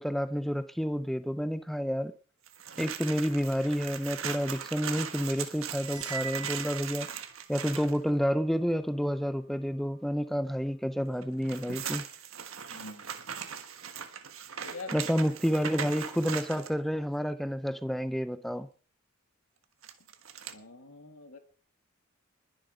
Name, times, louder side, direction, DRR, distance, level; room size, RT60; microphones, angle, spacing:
voice 1, 0.0-2.1 2.8-7.1 7.5-12.0 14.9-18.7, equal, ahead, 0.5 m, -30 dB
sound 1, 2.5-8.0 11.2-16.7 19.8-20.5, right 7 dB, 75° right, 1.5 m, -39 dB
sound 2, 5.8-7.7, right 6 dB, 20° right, 1.3 m, -42 dB
voice 2, 12.7-13.2 14.6-14.9 20.5-21.4, left 3 dB, 90° left, 2.3 m, -45 dB
21.0 x 7.5 x 5.1 m
head